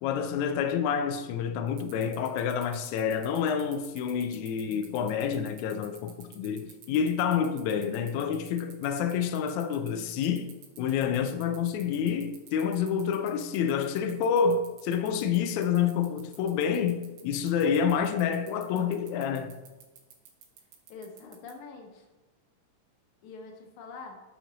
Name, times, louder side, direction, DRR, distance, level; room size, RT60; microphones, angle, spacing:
voice 1, 0.0-10.5 10.8-19.6, left 7 dB, 85° left, 1.6 m, -28 dB
sound 1, 1.7-21.5, right 8 dB, 85° right, 1.3 m, -50 dB
voice 2, 20.9-22.1 23.2-24.2, left 4 dB, 70° left, 2.3 m, -45 dB
7.3 x 5.9 x 4.0 m
omnidirectional pair, 3.9 m